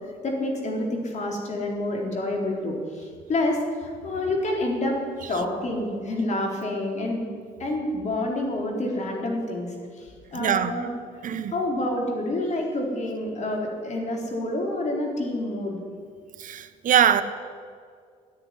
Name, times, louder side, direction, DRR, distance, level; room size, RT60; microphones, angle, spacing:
voice 1, 0.2-5.0 5.3-7.2 7.6-10.9 11.5-15.8, left 1 dB, 45° left, 1 dB, 4.0 m, -28 dB
voice 2, 10.3-10.7 11.2-11.5 16.4-17.2, right 9 dB, 50° right, 10 dB, 1.1 m, -22 dB
14.5 x 9.7 x 9.8 m, 2.1 s
cardioid pair, 110°, 17 cm